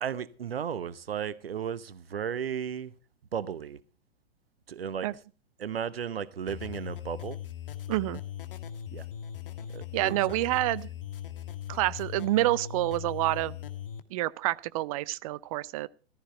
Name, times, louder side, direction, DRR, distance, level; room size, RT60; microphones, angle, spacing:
voice 1, 0.0-2.9 3.3-3.8 4.7-5.1 5.6-7.4 8.9-9.0 9.7-10.2, right 8 dB, 65° right, 1.0 m, -34 dB
sound 1, 6.5-14.0, left 10 dB, 55° left, 1.7 m, -39 dB
voice 2, 7.9-8.2 9.9-10.9 11.7-13.6 14.1-15.9, right 17 dB, 35° right, 0.6 m, -28 dB
14.5 x 14.0 x 4.4 m
figure-of-eight pair, 105°, 32 cm